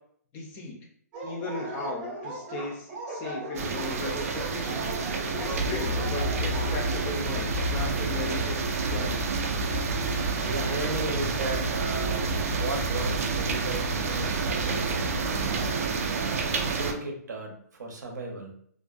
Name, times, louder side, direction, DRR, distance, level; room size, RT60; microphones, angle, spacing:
voice 1, 0.3-0.8 1.2-4.8 5.4-8.6 8.9-9.2, left 3 dB, 20° left, 0 dB, 0.4 m, -36 dB
Dog, 1.1-7.0, right 2 dB, 20° right, 0.7 m, -37 dB
sound 1, 3.5-16.9, right 5 dB, 55° right, 0.4 m, -30 dB
sound 2, 5.5-15.7, left 1 dB, 90° left, 0.5 m, -33 dB
voice 2, 9.8-15.0 15.5-18.5, right 2 dB, 85° right, 2 dB, 0.7 m, -36 dB
2.4 x 2.1 x 2.4 m, 0.64 s
hypercardioid pair, 160°, 9 cm